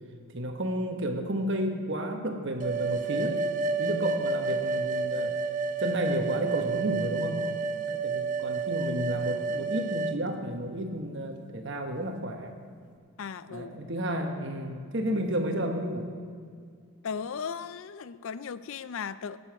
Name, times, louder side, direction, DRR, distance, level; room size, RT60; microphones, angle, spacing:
voice 1, 0.3-3.4 3.8-5.3 5.8-7.4 7.9-12.5 13.5-16.1, right 1 dB, 55° right, 4 dB, 1.1 m, -31 dB
sound 1, 2.6-10.2, right 4 dB, 35° right, 0.4 m, -30 dB
voice 2, 13.2-13.8 17.0-19.4, left 6 dB, 60° left, 15 dB, 0.4 m, -36 dB
16.5 x 7.0 x 4.7 m, 2.1 s
head